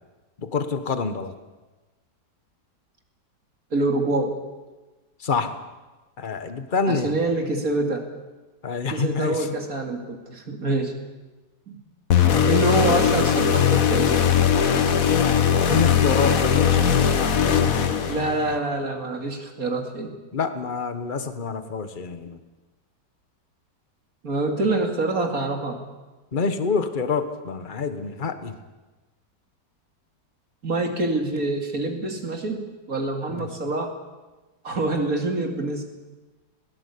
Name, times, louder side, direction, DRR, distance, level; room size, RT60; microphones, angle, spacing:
voice 1, 0.4-1.3 5.2-5.5 6.2-7.1 8.6-9.5 12.8-13.1 15.5-18.1 20.3-22.4 26.3-28.6 33.3-33.5, left 4 dB, 30° left, 9 dB, 1.4 m, -27 dB
voice 2, 3.7-4.4 6.9-8.1 8.9-10.9 11.7-11.8 12.4-14.3 18.1-20.1 24.2-25.8 30.6-33.9 34.6-35.8, right 2 dB, 55° right, 4 dB, 2.9 m, -26 dB
sound 1, 12.1-18.6, left 8 dB, 55° left, 1.6 m, -20 dB
20.5 x 17.5 x 8.5 m, 1.2 s
omnidirectional pair, 1.8 m